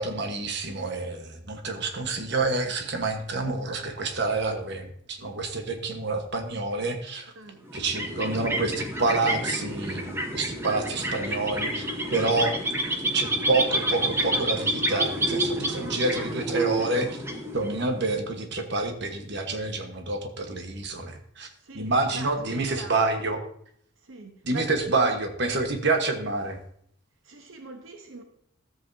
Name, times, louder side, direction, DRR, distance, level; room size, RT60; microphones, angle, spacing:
voice 1, 0.0-7.3 7.7-12.5 13.1-17.2 17.5-21.5 21.7-23.4 24.5-26.6, right 3 dB, 60° right, 1.3 m, -28 dB
voice 2, 7.4-7.7 21.6-23.0 24.0-25.1 27.2-28.2, right 2 dB, 85° right, 1.0 m, -43 dB
sound 1, 7.6-18.0, right 1 dB, 15° right, 1.1 m, -29 dB
13.5 x 7.8 x 2.7 m
head